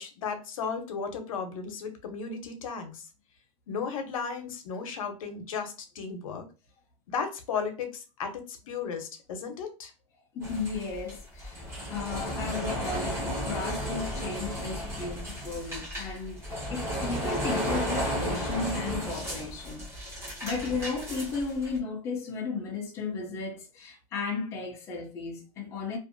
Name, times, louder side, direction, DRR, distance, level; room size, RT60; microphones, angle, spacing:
voice 1, 0.0-3.1 3.7-6.5 7.1-9.9, left 5 dB, 85° left, 0.8 m, -35 dB
voice 2, 10.3-16.4 16.7-26.0, left 4 dB, 15° left, 0.5 m, -35 dB
sound 1, 10.4-21.8, equal, 15° right, 1.1 m, -33 dB
2.6 x 2.5 x 2.5 m
supercardioid pair, 170°, 17 cm